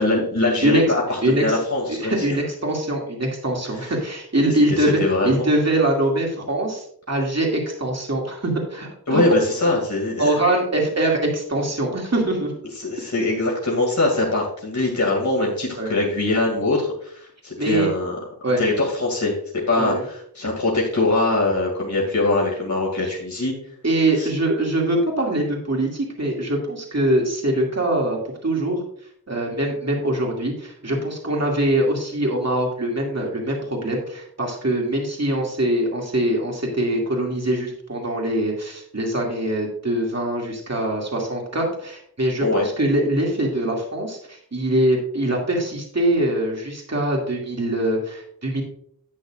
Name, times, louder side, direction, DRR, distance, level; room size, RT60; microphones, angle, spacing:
voice 1, 0.0-2.4 4.7-5.5 9.1-10.3 12.8-18.2 18.6-19.4 19.7-23.5 24.2-24.3 42.4-42.7, left 2 dB, 50° left, -3 dB, 2.3 m, -22 dB
voice 2, 1.9-9.2 10.2-12.5 15.8-15.9 17.6-17.9 18.4-18.6 19.8-20.0 23.0-23.1 23.8-28.8 29.3-48.6, right 1 dB, 45° right, -1 dB, 2.3 m, -23 dB
12.0 x 8.3 x 2.4 m, 0.63 s
wide cardioid pair, 50°, 37 cm